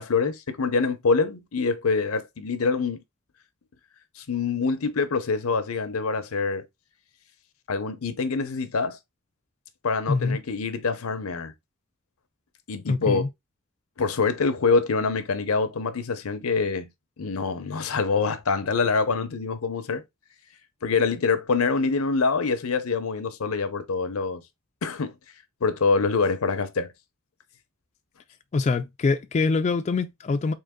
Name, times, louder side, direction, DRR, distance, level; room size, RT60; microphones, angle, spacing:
voice 1, 0.0-3.0 4.2-6.7 7.7-9.0 9.8-11.5 12.7-13.2 14.0-16.9 17.2-20.0 20.8-24.4 24.8-25.1 25.6-26.9, left 4 dB, 90° left, 0.7 m, -25 dB
voice 2, 12.9-13.3 28.5-30.5, left 4 dB, 35° left, 0.3 m, -24 dB
3.8 x 2.9 x 3.6 m
head